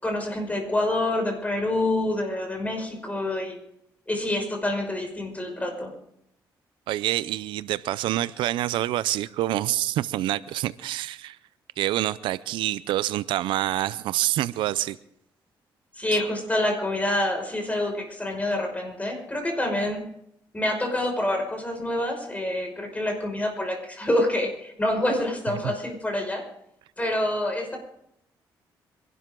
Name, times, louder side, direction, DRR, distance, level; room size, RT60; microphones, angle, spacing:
voice 1, 0.0-3.6 4.1-5.9 16.0-20.1 20.5-26.5 27.0-27.8, left 1 dB, 20° left, 5.7 m, -27 dB
voice 2, 6.9-11.4 11.8-15.0 25.6-25.7, right 14 dB, 90° right, 0.5 m, -27 dB
26.0 x 12.0 x 3.8 m
cardioid pair, 75°, 8 cm